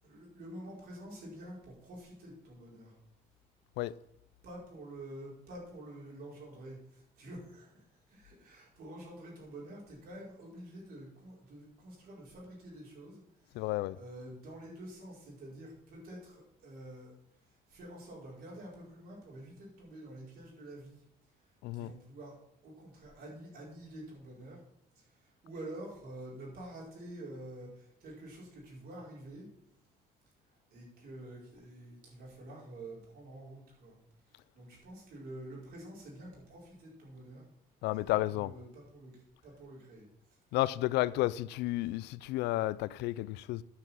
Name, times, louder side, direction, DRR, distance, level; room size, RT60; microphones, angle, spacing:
voice 1, 0.0-2.9 4.4-13.6 13.9-17.1 17.4-21.0 21.4-22.4 22.6-24.6 24.9-29.5 30.7-34.0 34.2-37.4 37.9-40.4, right 1 dB, 65° right, 5.1 m, -48 dB
voice 2, 13.5-14.0 21.6-21.9 37.8-38.6 40.5-43.6, left 17 dB, 85° left, 0.4 m, -32 dB
9.7 x 6.1 x 7.4 m
cardioid pair, 110°, 17 cm